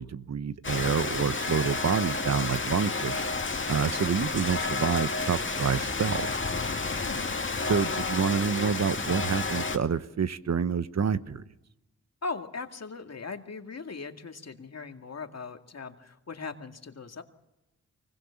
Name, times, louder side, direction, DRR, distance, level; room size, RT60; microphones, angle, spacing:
voice 1, 0.0-3.2 3.7-6.3 7.6-11.4, right 6 dB, 55° right, 14 dB, 1.0 m, -28 dB
Rain, 0.6-9.8, left 3 dB, 35° left, 2.3 m, -31 dB
voice 2, 7.0-7.3 12.2-17.2, left 4 dB, 50° left, 6 dB, 2.2 m, -39 dB
24.0 x 21.5 x 7.1 m, 0.93 s
cardioid pair, 55°, 33 cm